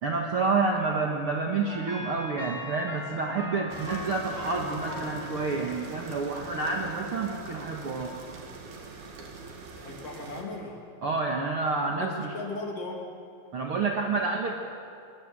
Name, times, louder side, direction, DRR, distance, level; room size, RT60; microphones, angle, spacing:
voice 1, 0.0-8.1 11.0-12.3 13.5-14.5, right 3 dB, 50° right, 0 dB, 1.8 m, -29 dB
sound 1, 1.7-7.2, left 1 dB, 10° right, 1.0 m, -41 dB
sound 2, 3.7-10.4, right 4 dB, 85° right, 4.3 m, -42 dB
voice 2, 9.8-10.8 12.0-13.1, left 2 dB, 40° left, 0 dB, 3.8 m, -37 dB
25.0 x 21.0 x 7.6 m, 2.4 s
omnidirectional pair, 4.3 m